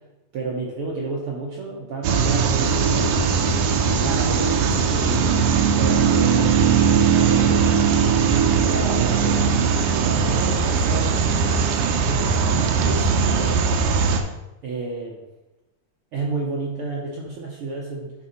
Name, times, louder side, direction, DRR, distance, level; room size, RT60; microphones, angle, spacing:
voice 1, 0.3-3.4 3.9-5.4 5.8-7.8 8.5-9.5 10.0-13.7 14.6-15.2 16.1-18.1, right 3 dB, 70° right, -3 dB, 1.3 m, -31 dB
sound 1, 2.0-14.2, right 6 dB, 85° right, 2.2 m, -19 dB
sound 2, 4.0-9.8, right 1 dB, 45° right, 1.7 m, -37 dB
10.5 x 3.8 x 4.3 m, 0.97 s
omnidirectional pair, 3.7 m